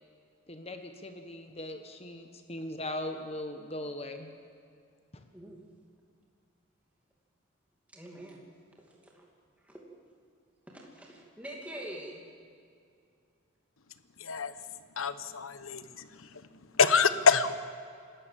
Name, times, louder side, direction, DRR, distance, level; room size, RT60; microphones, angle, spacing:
voice 1, 0.5-4.3 5.1-5.2, left 1 dB, 30° left, 1.2 m, -39 dB
voice 2, 7.9-8.4 8.8-9.2 9.6-9.8 10.7-12.2, right 1 dB, 5° right, 2.6 m, -45 dB
voice 3, 14.2-14.5 15.0-16.4 16.7-17.6, left 5 dB, 85° left, 1.0 m, -26 dB
27.5 x 13.5 x 7.5 m
head